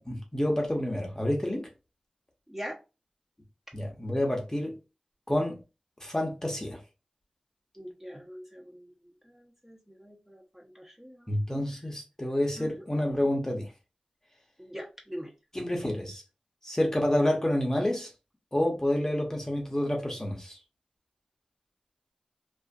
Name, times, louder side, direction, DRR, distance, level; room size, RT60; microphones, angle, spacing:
voice 1, 0.0-1.7 3.7-4.7 5.3-5.6 6.0-6.8 11.3-13.7 15.5-16.2 16.6-18.1 18.5-20.6, left 1 dB, 20° left, 0.9 m, -28 dB
voice 2, 2.5-2.8 7.8-11.4 12.6-12.7 14.6-15.3, equal, 15° right, 0.8 m, -43 dB
2.6 x 2.4 x 2.3 m
cardioid pair, 40°, 2 cm